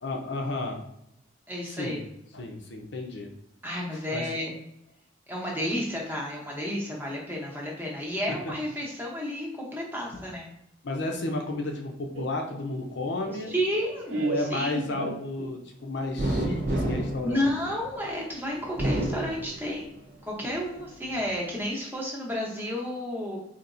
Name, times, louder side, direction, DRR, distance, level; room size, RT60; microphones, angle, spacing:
voice 1, 0.0-0.8 1.7-2.0 2.3-3.3 3.9-4.3 8.3-8.5 10.1-10.3 10.8-13.5 14.2-17.5, left 2 dB, 55° left, 3 dB, 0.6 m, -32 dB
voice 2, 1.5-2.0 3.6-4.6 5.3-10.5 13.5-14.7 17.2-19.9 20.3-23.4, equal, 10° right, -2 dB, 0.8 m, -31 dB
Laughter, 12.1-15.8, right 2 dB, 60° right, 0.6 m, -34 dB
sound 1, 16.2-18.1 18.6-20.0 20.4-21.3, right 1 dB, 45° right, 1.0 m, -30 dB
4.2 x 2.8 x 2.6 m, 0.78 s
head